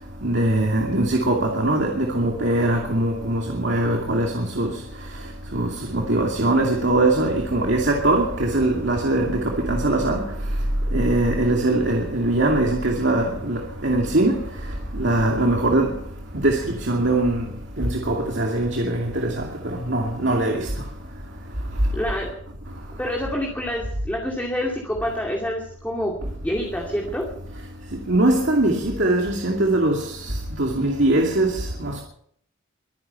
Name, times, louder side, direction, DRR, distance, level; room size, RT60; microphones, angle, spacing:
voice 1, 0.2-4.7 5.5-10.2 10.9-14.4 15.0-15.9 16.4-17.4 17.8-19.3 19.9-20.7 28.1-30.0 30.6-32.0, right 1 dB, 65° right, 2.5 m, -21 dB
voice 2, 21.9-22.3 23.0-27.3, equal, 10° left, 2.6 m, -27 dB
23.0 x 10.5 x 5.7 m
head